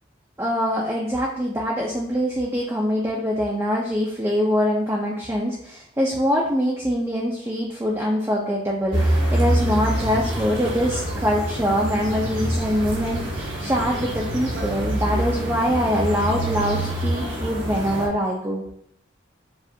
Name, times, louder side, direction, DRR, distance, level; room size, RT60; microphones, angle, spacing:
voice 1, 0.4-18.6, equal, 15° right, -3 dB, 0.5 m, -24 dB
sound 1, 8.9-18.1, right 1 dB, 70° right, 1.1 m, -26 dB
7.2 x 2.4 x 2.7 m, 0.70 s
head